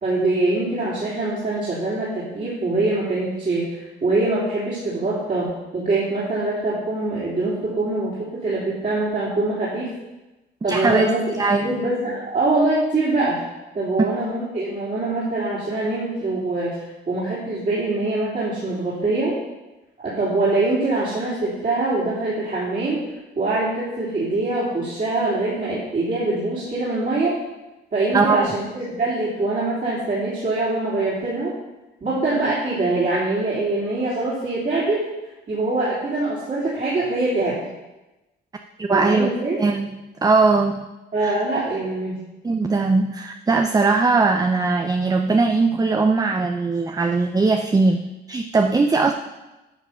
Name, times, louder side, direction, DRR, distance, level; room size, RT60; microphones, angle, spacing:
voice 1, 0.0-5.5 5.7-9.9 10.6-11.4 11.6-13.4 13.7-19.3 20.0-23.0 23.4-27.4 27.9-31.5 32.0-35.1 35.5-37.5 38.9-39.6 41.1-42.2, right 2 dB, 40° right, -9 dB, 3.4 m, -23 dB
voice 2, 10.7-11.7 28.1-28.5 38.8-39.3 39.6-40.9 41.2-41.4 42.4-49.1, right 3 dB, 20° right, 5 dB, 0.6 m, -20 dB
11.0 x 5.8 x 5.8 m, 1.0 s
cardioid pair, 90°, 20 cm